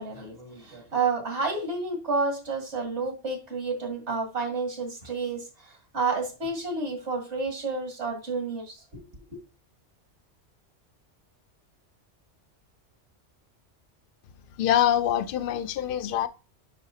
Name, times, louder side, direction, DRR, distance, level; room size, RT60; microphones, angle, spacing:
voice 1, 0.0-9.1, right 4 dB, 75° right, 2.2 m, -30 dB
voice 2, 14.6-16.3, left 11 dB, 60° left, 0.7 m, -24 dB
9.6 x 4.9 x 2.8 m
omnidirectional pair, 1.2 m